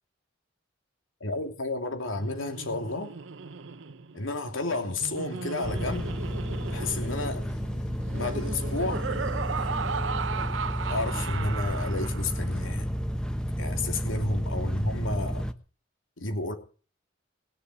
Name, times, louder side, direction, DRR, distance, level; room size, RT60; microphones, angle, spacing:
voice 1, 1.2-3.1 4.1-6.1 6.7-7.5 8.1-9.1 10.9-12.9 13.6-15.5 16.2-16.5, left 2 dB, 85° left, 2.9 m, -31 dB
Laughter, 2.1-12.6, right 5 dB, 70° right, 0.8 m, -36 dB
sound 1, 5.6-15.5, equal, 5° left, 1.1 m, -31 dB
sound 2, 6.6-11.8, left 2 dB, 40° left, 1.9 m, -48 dB
20.5 x 6.9 x 9.3 m
head